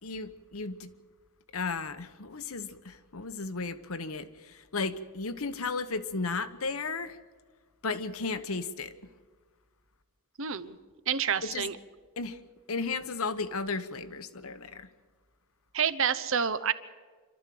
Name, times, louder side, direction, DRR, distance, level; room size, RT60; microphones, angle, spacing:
voice 1, 0.0-0.9 1.5-7.2 7.8-8.9 11.4-11.7 12.2-12.4 12.7-14.9, left 4 dB, 70° left, 1.1 m, -34 dB
voice 2, 10.4-10.8 11.1-11.7 15.7-16.7, right 7 dB, 60° right, 0.9 m, -28 dB
26.5 x 13.0 x 7.8 m
head